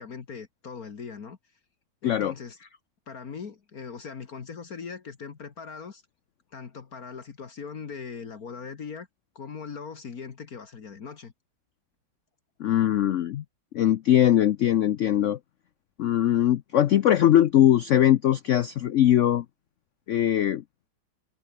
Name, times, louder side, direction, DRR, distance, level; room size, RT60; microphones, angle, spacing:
voice 1, 0.0-1.4 2.0-2.8 3.1-6.0 6.5-9.1 9.4-11.3, left 5 dB, 50° left, 2.0 m, -40 dB
voice 2, 2.0-2.3 12.6-13.4 13.7-15.4 16.0-19.4 20.1-20.6, left 11 dB, 90° left, 0.6 m, -21 dB
omnidirectional pair, 2.0 m